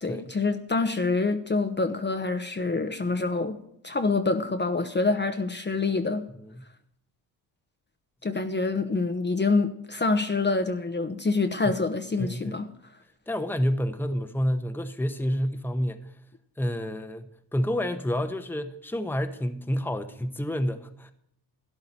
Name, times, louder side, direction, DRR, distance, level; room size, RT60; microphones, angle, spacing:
voice 1, 0.0-3.6 3.8-6.3 8.2-12.7, left 3 dB, 25° left, 1.0 m, -26 dB
voice 2, 12.2-12.6 13.3-16.1 16.6-17.3 17.5-21.1, equal, 5° left, 1.1 m, -29 dB
12.5 x 10.5 x 4.3 m
supercardioid pair, 65°, 46 cm